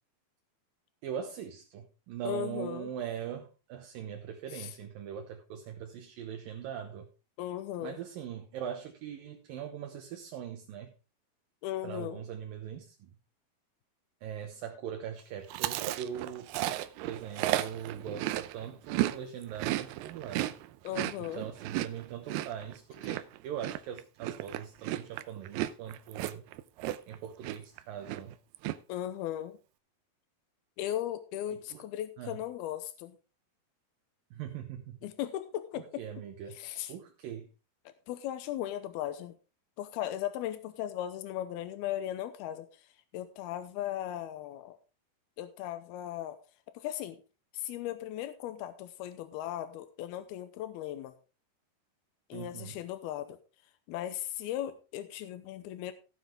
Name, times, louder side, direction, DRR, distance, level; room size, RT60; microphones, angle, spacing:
voice 1, 1.0-7.1 7.8-10.9 11.8-13.2 14.2-16.5 17.0-20.6 21.2-26.4 27.1-28.4 31.5-31.8 32.2-32.4 34.3-35.0 35.8-36.6 36.9-37.5 52.3-52.8, right 9 dB, 70° right, 4 dB, 2.7 m, -41 dB
voice 2, 2.2-2.9 4.5-4.7 7.4-8.0 11.6-12.2 17.5-17.7 20.8-21.5 28.9-29.6 30.8-33.2 35.0-36.0 36.6-36.9 38.1-39.3 39.8-42.7 43.1-44.8 45.4-46.4 46.7-47.2 47.5-51.1 52.3-53.4 53.9-55.9, left 12 dB, 90° left, 11 dB, 2.8 m, -37 dB
Chewing mastication, 15.5-19.2 19.4-27.2 27.4-27.8 28.0-28.8, right 15 dB, 90° right, 2.6 m, -34 dB
16.5 x 7.4 x 3.6 m, 0.32 s
omnidirectional pair, 4.4 m